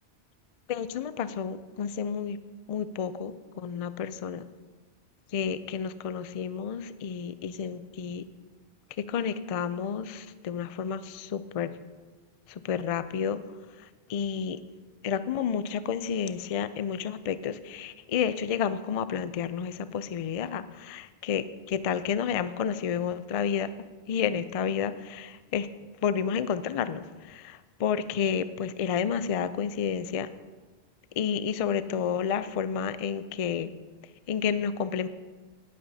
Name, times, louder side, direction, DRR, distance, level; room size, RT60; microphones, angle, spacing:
voice 1, 0.7-2.4 2.7-4.4 5.3-8.2 9.1-11.7 12.6-13.4 14.1-14.6 15.0-23.7 24.1-25.7 26.0-30.3 31.2-33.7 34.3-35.1, left 7 dB, 55° left, 13 dB, 0.4 m, -30 dB
18.5 x 8.5 x 2.7 m, 1.3 s
omnidirectional pair, 1.1 m